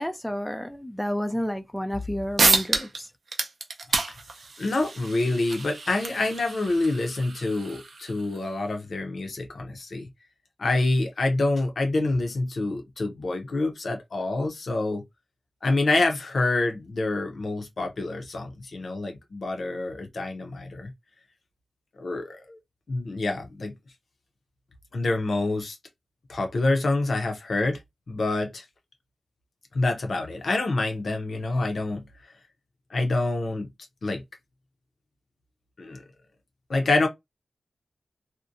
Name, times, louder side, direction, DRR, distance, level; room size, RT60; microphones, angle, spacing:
voice 1, 0.0-3.1, equal, 5° left, 0.4 m, -30 dB
sound 1, 2.0-2.1 2.4-3.0 3.3-8.4, right 3 dB, 80° right, 0.6 m, -28 dB
voice 2, 4.6-10.1 10.6-15.0 15.6-20.9 22.0-22.6 22.9-23.7 24.9-25.8 26.3-27.8 28.1-28.6 29.7-32.0 32.9-33.7 34.0-34.2 35.8-36.0 36.7-37.1, left 2 dB, 75° left, 0.7 m, -27 dB
2.7 x 2.1 x 2.5 m
cardioid pair, 55°, 0 cm